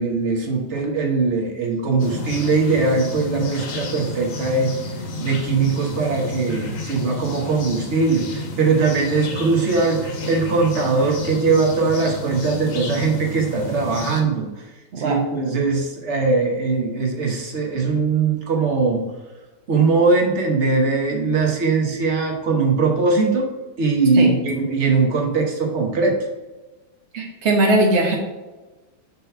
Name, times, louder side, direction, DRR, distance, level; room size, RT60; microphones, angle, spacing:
voice 1, 0.0-4.7 5.2-14.6 15.0-19.0 19.7-23.5 23.8-26.2, right 4 dB, 45° right, 1 dB, 1.0 m, -20 dB
sound 1, 2.0-14.2, left 1 dB, 70° left, 1.7 m, -31 dB
voice 2, 27.1-28.1, right 2 dB, 65° right, 0 dB, 0.6 m, -19 dB
5.8 x 3.8 x 5.5 m, 1.2 s
omnidirectional pair, 2.4 m